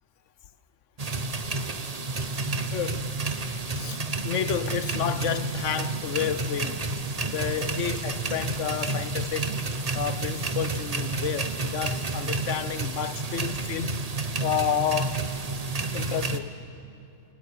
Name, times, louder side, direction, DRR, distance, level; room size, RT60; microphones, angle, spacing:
sound 1, 1.0-16.4, right 3 dB, 35° right, 1.1 m, -30 dB
voice 1, 2.7-3.1 3.8-9.5 9.9-14.0 14.4-15.2 15.9-16.6, left 9 dB, 85° left, 1.1 m, -30 dB
29.0 x 22.0 x 7.1 m
omnidirectional pair, 1.2 m